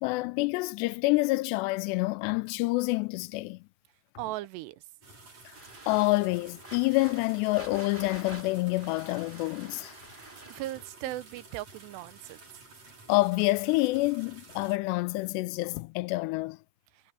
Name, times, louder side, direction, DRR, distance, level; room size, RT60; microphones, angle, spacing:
voice 1, 0.0-3.6 5.9-10.0 13.1-16.6, left 22 dB, 90° left, 2.8 m, -27 dB
voice 2, 4.2-4.8 10.5-12.4, right 16 dB, 85° right, 2.9 m, -37 dB
sound 1, 5.0-14.8, right 3 dB, 40° right, 6.3 m, -52 dB
sound 2, 5.5-10.9, right 1 dB, 10° right, 3.8 m, -48 dB
omnidirectional pair, 4.8 m